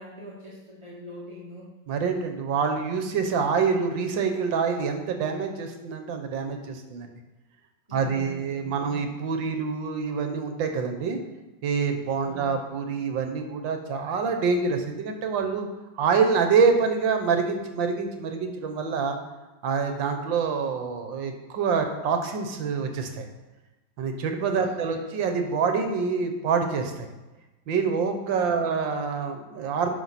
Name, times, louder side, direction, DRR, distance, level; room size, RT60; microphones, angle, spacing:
voice 1, 0.0-1.6 7.9-9.1 12.2-12.6 24.6-25.1 28.4-28.9, left 1 dB, 20° right, -7 dB, 1.0 m, -43 dB
voice 2, 1.9-7.1 7.9-11.2 11.6-15.7 16.0-19.2 19.6-23.3 24.0-27.1 27.7-30.0, right 5 dB, 70° right, 6 dB, 1.5 m, -26 dB
9.8 x 6.0 x 4.1 m, 1.1 s
omnidirectional pair, 2.2 m